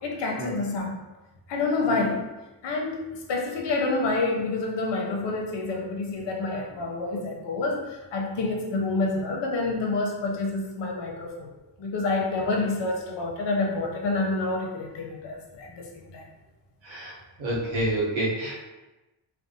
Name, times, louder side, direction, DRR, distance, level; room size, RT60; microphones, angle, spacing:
voice 1, 0.0-1.0 1.5-2.3 2.6-11.5 11.8-16.3, left 3 dB, 70° left, 0 dB, 0.6 m, -28 dB
voice 2, 17.4-18.7, right 1 dB, 85° right, -5 dB, 0.9 m, -28 dB
2.5 x 2.0 x 2.6 m, 1.1 s
cardioid pair, 85°, 45 cm